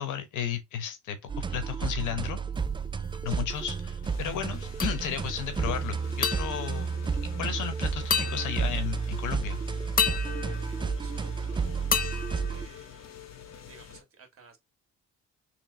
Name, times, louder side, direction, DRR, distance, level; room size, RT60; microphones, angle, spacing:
voice 1, 0.0-2.4 3.2-6.9 7.4-9.6, left 9 dB, 80° left, 1.1 m, -34 dB
sound 1, 1.3-12.7, right 5 dB, 15° right, 0.4 m, -31 dB
sound 2, 1.5-14.0, left 8 dB, 60° left, 1.0 m, -48 dB
sound 3, 4.8-5.4 6.2-7.7 8.1-9.1 10.0-11.5 11.9-13.3, left 6 dB, 30° left, 0.6 m, -32 dB
voice 2, 10.3-13.1 13.4-14.6, right 5 dB, 45° right, 1.6 m, -56 dB
3.3 x 3.0 x 3.8 m
cardioid pair, 90°, 30 cm